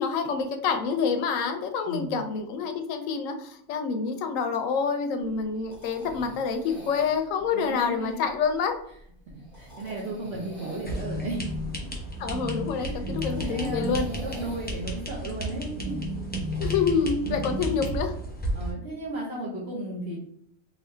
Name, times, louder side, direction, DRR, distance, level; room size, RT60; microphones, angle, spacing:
voice 1, 0.0-8.7 12.2-14.1 16.6-18.1, left 5 dB, 75° left, 6 dB, 1.0 m, -27 dB
voice 2, 1.9-2.2 7.5-8.2 9.3-11.5 12.7-16.0 17.3-17.5 18.5-20.2, right 2 dB, 55° right, -5 dB, 1.1 m, -35 dB
sound 1, 5.2-14.9, left 1 dB, 30° right, 1.3 m, -47 dB
sound 2, 10.8-18.7, equal, 10° left, 0.5 m, -32 dB
3.8 x 2.7 x 3.2 m, 0.68 s
omnidirectional pair, 1.4 m